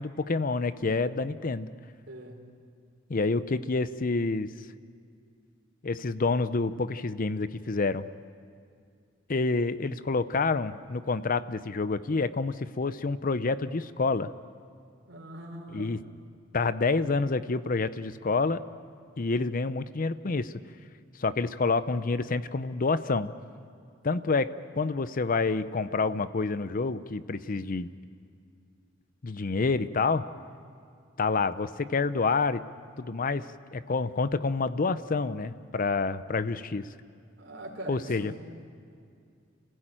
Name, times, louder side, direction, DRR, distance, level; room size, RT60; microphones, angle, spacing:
voice 1, 0.0-1.7 3.1-4.5 5.8-8.1 9.3-14.3 15.7-16.0 16.5-18.6 19.2-20.5 21.2-23.3 24.0-24.5 24.7-27.9 29.2-30.2 31.2-32.6 33.0-33.5 33.7-36.9 37.9-38.3, left 3 dB, 45° left, 14 dB, 0.6 m, -28 dB
voice 2, 2.1-2.6 15.1-16.1 37.4-38.4, right 1 dB, 70° right, 2 dB, 4.0 m, -42 dB
29.0 x 15.5 x 8.9 m, 2.3 s
head